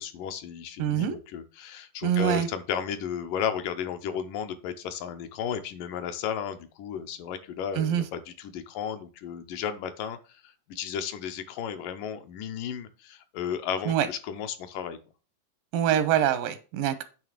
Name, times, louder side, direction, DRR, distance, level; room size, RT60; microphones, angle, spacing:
voice 1, 0.0-10.2 10.4-15.0, left 8 dB, 75° left, 8 dB, 2.3 m, -34 dB
voice 2, 0.8-1.2 2.0-2.5 7.8-8.0 13.9-14.1 15.7-17.0, right 10 dB, 85° right, 12 dB, 2.5 m, -24 dB
9.1 x 3.4 x 6.5 m, 0.35 s
omnidirectional pair, 4.0 m